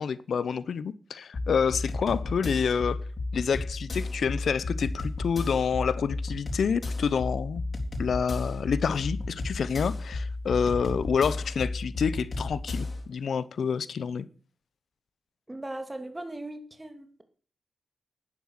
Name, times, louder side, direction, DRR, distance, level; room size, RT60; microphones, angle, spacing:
voice 1, 0.0-3.0 3.3-7.6 8.0-14.3, left 6 dB, 75° left, 0.8 m, -28 dB
sound 1, 1.3-13.0, left 2 dB, 55° left, 3.8 m, -33 dB
voice 2, 15.5-17.1, right 1 dB, 20° right, 2.5 m, -38 dB
10.5 x 9.9 x 6.6 m
cardioid pair, 50°, 0 cm